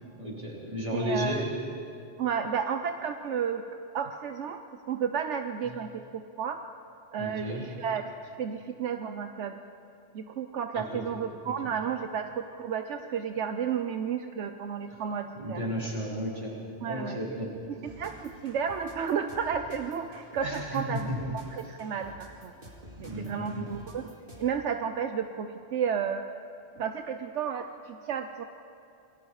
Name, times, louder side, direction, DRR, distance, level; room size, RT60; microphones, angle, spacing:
voice 1, 0.1-1.4 7.2-7.7 10.7-11.0 11.4-11.5 14.9-15.0 15.4-17.5 20.4-21.2 22.9-23.7, equal, 35° right, -4 dB, 4.5 m, -34 dB
voice 2, 0.9-1.4 2.2-3.6 3.9-6.6 7.1-9.6 10.1-15.6 16.8-17.2 17.8-22.5 23.0-24.1 24.4-26.2 26.8-28.4, right 7 dB, 80° right, 7 dB, 1.1 m, -32 dB
sound 1, 17.8-24.7, equal, 50° right, 2.7 m, -50 dB
28.0 x 21.0 x 4.9 m, 2.6 s
omnidirectional pair, 1.2 m